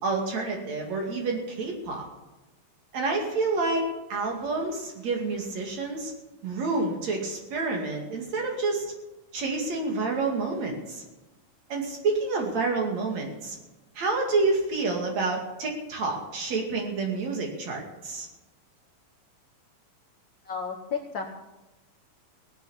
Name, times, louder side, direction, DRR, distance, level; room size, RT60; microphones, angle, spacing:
voice 1, 0.0-2.1 2.9-6.1 6.4-8.9 9.3-11.0 11.7-13.6 14.0-18.3, right 3 dB, 55° right, 1 dB, 3.4 m, -28 dB
voice 2, 20.5-21.3, left 6 dB, 65° left, 2 dB, 1.1 m, -32 dB
18.5 x 8.2 x 7.2 m, 1.0 s
omnidirectional pair, 3.9 m